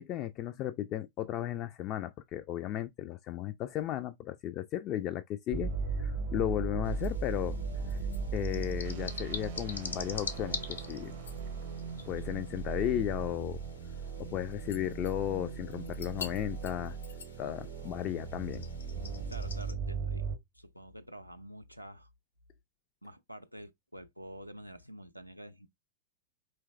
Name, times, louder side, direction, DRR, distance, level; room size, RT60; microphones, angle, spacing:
voice 1, 0.0-5.7 6.0-7.6 7.9-8.0 8.3-11.1 12.1-13.6 14.2-17.0 17.4-18.6, left 12 dB, 35° left, 0.3 m, -35 dB
sound 1, 5.5-20.4, right 4 dB, 50° right, 0.6 m, -37 dB
sound 2, 6.8-19.7, left 5 dB, 70° left, 0.6 m, -46 dB
voice 2, 19.3-20.3 20.5-22.1 23.0-25.7, equal, 90° right, 0.4 m, -48 dB
4.5 x 3.0 x 2.3 m
figure-of-eight pair, 90°, 0 cm